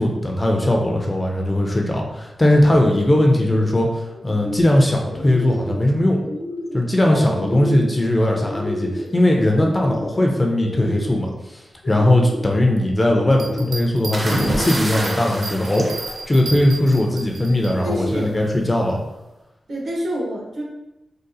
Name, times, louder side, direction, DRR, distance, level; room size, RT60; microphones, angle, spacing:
voice 1, 0.0-6.2 6.7-15.9 16.3-19.0, left 1 dB, 15° left, 0 dB, 0.4 m, -19 dB
sound 1, 3.3-3.7 4.1-4.8 5.1-5.8 6.2-6.9 7.3-8.0 8.4-9.2 9.5-10.2 10.6-11.4 11.8-12.6 13.1-13.8 14.4-15.2, left 1 dB, 70° left, 0.5 m, -32 dB
voice 2, 7.0-8.0 17.8-18.3 19.7-20.6, equal, 75° right, -4 dB, 1.0 m, -28 dB
sound 2, 13.3-17.7, right 3 dB, 90° right, 0.4 m, -33 dB
sound 3, 14.1-16.9 18.1-18.4, right 1 dB, 35° right, 0.5 m, -26 dB
3.7 x 2.3 x 2.6 m, 0.94 s
wide cardioid pair, 175°, 0 cm